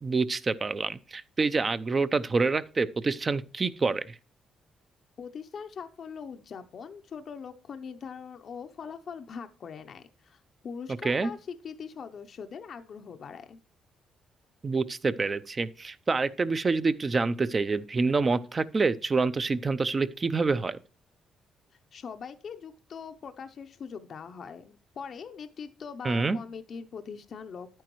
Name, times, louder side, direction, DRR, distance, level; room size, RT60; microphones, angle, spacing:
voice 1, 0.0-4.2 11.0-11.3 14.6-20.8 26.0-26.4, right 4 dB, 30° right, 0.6 m, -27 dB
voice 2, 5.2-13.6 21.9-27.8, left 6 dB, 55° left, 0.6 m, -42 dB
10.5 x 9.1 x 3.0 m
cardioid pair, 90°, 0 cm